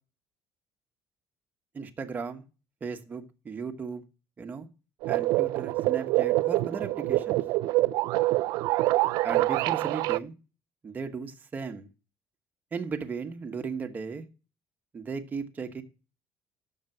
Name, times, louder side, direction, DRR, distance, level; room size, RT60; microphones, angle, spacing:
voice 1, 1.7-2.4 2.8-4.0 4.4-4.7 5.1-7.4 9.2-10.3 10.8-11.9 12.7-14.2 14.9-15.8, right 5 dB, 25° right, 6 dB, 1.3 m, -36 dB
sound 1, 5.0-10.2, right 18 dB, 90° right, 0.4 m, -25 dB
7.1 x 6.7 x 7.8 m, 0.33 s
cardioid pair, 145°, 7 cm